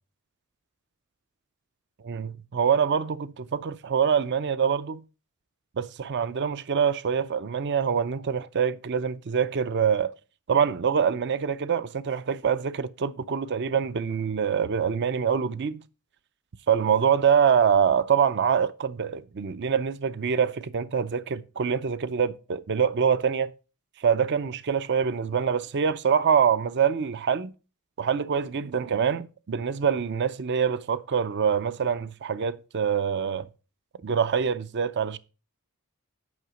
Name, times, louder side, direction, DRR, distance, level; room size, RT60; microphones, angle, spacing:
voice 1, 2.0-5.0 5.8-10.1 10.5-15.8 16.7-23.5 24.0-27.5 28.0-33.5 34.0-35.2, right 7 dB, 50° right, 0.5 m, -25 dB
9.6 x 5.5 x 5.1 m
head